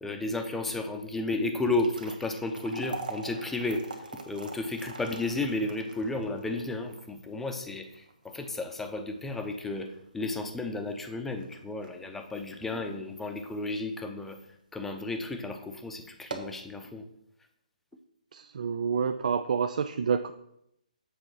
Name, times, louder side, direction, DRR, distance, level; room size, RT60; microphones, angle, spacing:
voice 1, 0.0-3.9 4.3-14.4 14.7-17.1, left 2 dB, 5° left, 5 dB, 0.7 m, -33 dB
sound 1, 1.5-13.8 14.2-14.3 15.1-15.2 15.6-15.7 16.1-16.7, right 3 dB, 80° right, 1.3 m, -44 dB
voice 2, 18.3-20.3, right 6 dB, 65° right, 9 dB, 0.4 m, -28 dB
7.6 x 4.1 x 6.2 m, 0.77 s
hypercardioid pair, 150°, 4 cm